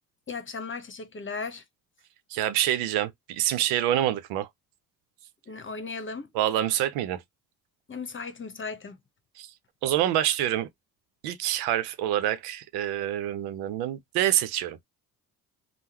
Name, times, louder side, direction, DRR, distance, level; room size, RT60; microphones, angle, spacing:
voice 1, 0.3-1.6 5.5-6.3 7.9-9.0, left 4 dB, 30° left, 1.0 m, -36 dB
voice 2, 2.3-4.5 6.3-7.2 9.4-9.5 9.8-10.7 11.2-14.8, right 12 dB, 90° right, 0.6 m, -26 dB
3.6 x 2.1 x 2.8 m
supercardioid pair, 75°, 37 cm